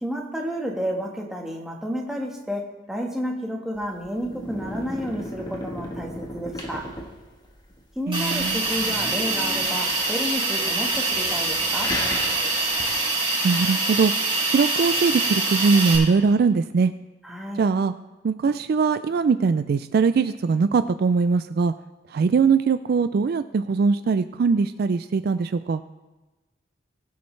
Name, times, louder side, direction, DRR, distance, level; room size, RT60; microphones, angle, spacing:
voice 1, 0.0-6.9 7.9-12.0 17.2-17.6, equal, 5° right, -1 dB, 1.4 m, -31 dB
sound 1, 3.8-13.0, left 1 dB, 20° left, 1.2 m, -36 dB
Hiss, 8.1-16.0, right 2 dB, 25° right, 3.9 m, -24 dB
voice 2, 8.1-8.6 13.4-14.1 14.5-16.9 17.6-17.9 18.2-21.7 22.1-25.8, right 5 dB, 55° right, 12 dB, 0.3 m, -21 dB
20.5 x 7.1 x 3.2 m, 1.1 s
head